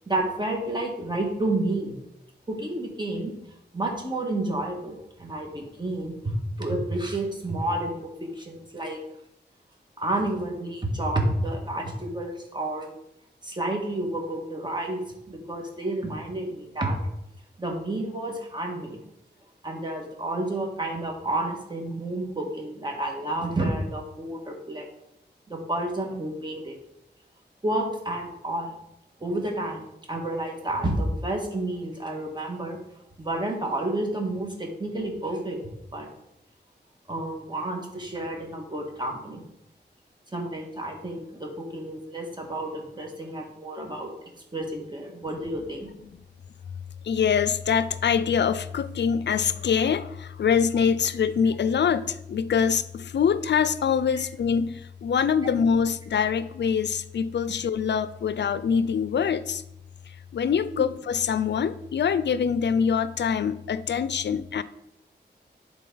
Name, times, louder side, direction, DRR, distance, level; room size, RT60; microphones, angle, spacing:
voice 1, 0.1-1.9 2.5-3.4 3.7-6.2 6.6-9.0 10.0-12.9 13.4-15.0 15.3-17.0 17.6-19.0 19.6-24.9 25.5-26.7 27.6-28.8 29.2-29.8 30.1-32.8 33.2-35.6 35.9-36.1 37.1-39.4 40.3-44.1 44.5-45.9 54.2-54.3, right 1 dB, 25° right, 1 dB, 1.8 m, -30 dB
voice 2, 47.0-59.6 60.1-64.6, left 7 dB, 70° left, 15 dB, 0.4 m, -24 dB
11.0 x 4.0 x 3.9 m, 0.82 s
wide cardioid pair, 70°, 18 cm